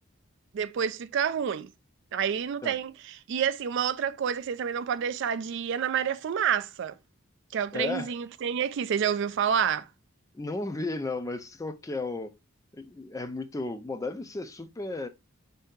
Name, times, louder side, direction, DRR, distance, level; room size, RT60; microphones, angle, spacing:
voice 1, 0.5-1.7 2.1-2.9 3.3-6.9 7.5-9.9, right 8 dB, 60° right, 0.3 m, -28 dB
voice 2, 7.7-8.2 10.3-12.3 12.7-15.1, left 2 dB, 15° left, 0.4 m, -34 dB
4.4 x 2.7 x 3.5 m
head